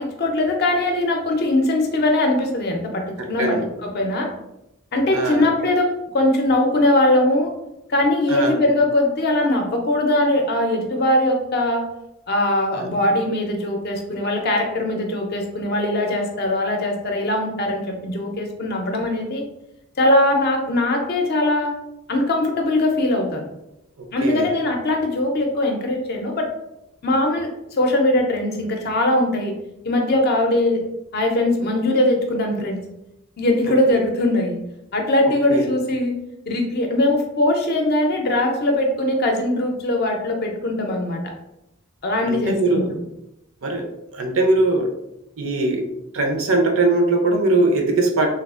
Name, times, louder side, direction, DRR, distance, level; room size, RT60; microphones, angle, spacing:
voice 1, 0.0-3.6 3.8-4.3 4.9-7.5 7.9-11.8 12.3-19.4 20.0-21.7 22.1-23.5 24.1-26.5 27.0-27.5 27.8-29.5 29.8-30.8 31.1-32.8 33.4-34.6 34.9-36.2 36.5-41.2 42.0-42.8, left 1 dB, 45° left, 2 dB, 0.5 m, -21 dB
voice 2, 3.2-3.7 5.1-5.5 8.3-8.6 12.7-13.0 24.2-24.5 35.5-35.7 42.3-42.9 43.6-43.9 44.1-44.9 45.4-45.9 46.1-48.3, right 2 dB, 65° right, 4 dB, 0.5 m, -20 dB
3.4 x 2.4 x 2.4 m, 0.87 s
head